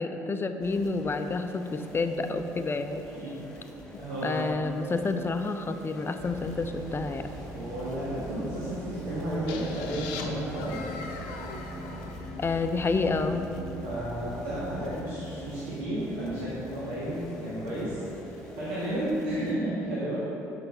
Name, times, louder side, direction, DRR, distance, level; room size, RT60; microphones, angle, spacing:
voice 1, 0.0-3.0 3.9-7.3 12.4-13.5, left 3 dB, 30° left, 8 dB, 0.6 m, -29 dB
sound 1, 0.6-19.5, equal, 10° left, 1.8 m, -48 dB
voice 2, 3.1-3.6 4.0-4.9 7.5-10.8 13.8-20.2, right 1 dB, 75° right, -10 dB, 1.7 m, -33 dB
sound 2, 6.2-19.6, equal, 50° right, 1.7 m, -42 dB
sound 3, 9.5-13.2, left 4 dB, 75° left, 0.7 m, -41 dB
6.7 x 5.8 x 5.4 m, 3.0 s
hypercardioid pair, 60°, 8 cm